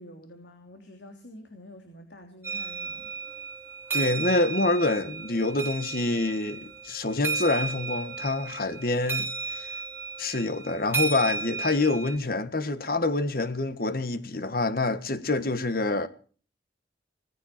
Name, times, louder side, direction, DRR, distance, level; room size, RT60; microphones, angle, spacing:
voice 1, 0.0-3.1, left 1 dB, 70° left, 3.0 m, -48 dB
sound 1, 2.4-12.1, right 4 dB, 10° right, 4.0 m, -34 dB
voice 2, 3.9-9.7 10.2-16.1, left 2 dB, 50° left, 1.5 m, -26 dB
18.5 x 15.0 x 4.4 m
head